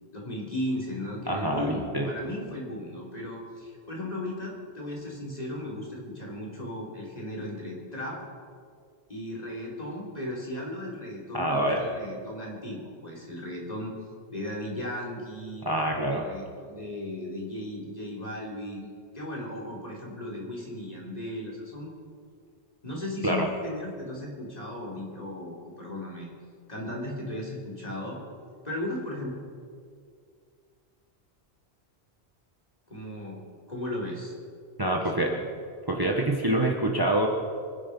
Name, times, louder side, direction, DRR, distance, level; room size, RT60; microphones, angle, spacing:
voice 1, 0.1-8.2 9.1-13.9 14.3-15.6 16.1-18.9 19.1-21.9 22.8-26.3 26.7-28.2 28.6-29.4 32.9-33.4 33.7-34.3 34.9-35.4, left 1 dB, 35° left, -3 dB, 3.6 m, -36 dB
voice 2, 1.3-2.1 11.3-11.8 15.6-16.3 23.2-23.5 34.8-35.3 35.9-37.3, right 1 dB, 20° right, 0 dB, 1.3 m, -26 dB
25.0 x 10.0 x 5.4 m, 2.2 s
omnidirectional pair, 1.2 m